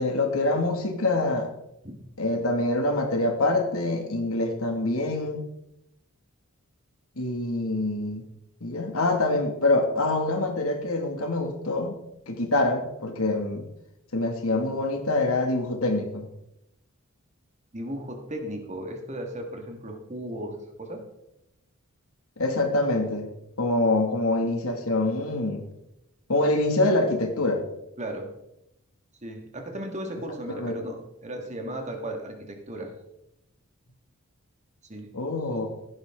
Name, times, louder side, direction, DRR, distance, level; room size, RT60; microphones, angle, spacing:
voice 1, 0.0-1.5 2.2-5.4 7.2-8.3 8.6-12.0 12.3-13.6 14.1-16.3 22.4-23.3 23.6-25.6 26.3-27.6 30.5-30.7 35.1-35.7, left 2 dB, 70° left, 4 dB, 2.3 m, -25 dB
voice 2, 17.7-20.5 20.8-21.0 28.0-28.3 29.2-32.9 34.8-35.1, right 1 dB, 30° right, 3 dB, 2.0 m, -35 dB
15.5 x 10.5 x 3.8 m, 0.84 s
head